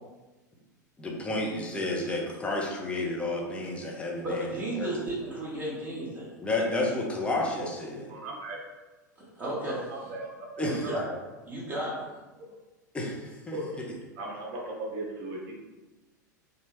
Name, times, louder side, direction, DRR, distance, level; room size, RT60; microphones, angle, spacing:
voice 1, 1.0-5.0 6.4-8.1 10.6-10.9 12.9-13.9, left 2 dB, 10° left, -2 dB, 0.7 m, -31 dB
voice 2, 4.2-6.3 9.3-9.8 10.7-11.1 11.5-12.1, right 1 dB, 15° right, -7 dB, 1.5 m, -33 dB
voice 3, 8.1-8.6 9.9-10.2 10.5-10.7 11.0-11.2 13.5-13.6 14.2-15.5, right 2 dB, 50° right, -1 dB, 0.9 m, -37 dB
4.1 x 2.4 x 3.1 m, 1.2 s
figure-of-eight pair, 90°, 10 cm